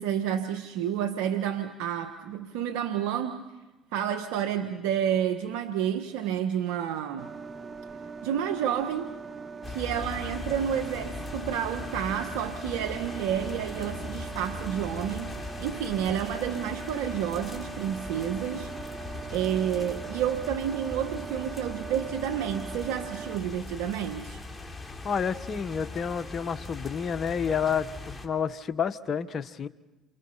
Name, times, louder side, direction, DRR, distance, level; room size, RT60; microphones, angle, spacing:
voice 1, 0.0-3.4 3.9-7.3 8.2-9.2 9.7-18.7 19.3-24.4, right 9 dB, 85° right, 7 dB, 1.4 m, -30 dB
sound 1, 7.2-23.4, right 5 dB, 40° right, 1.4 m, -41 dB
sound 2, 9.6-28.3, left 3 dB, 15° left, 3.5 m, -40 dB
voice 2, 25.0-27.9 28.2-29.7, left 7 dB, 45° left, 11 dB, 1.3 m, -29 dB
28.5 x 28.0 x 5.8 m, 1.1 s
supercardioid pair, 75°, 0 cm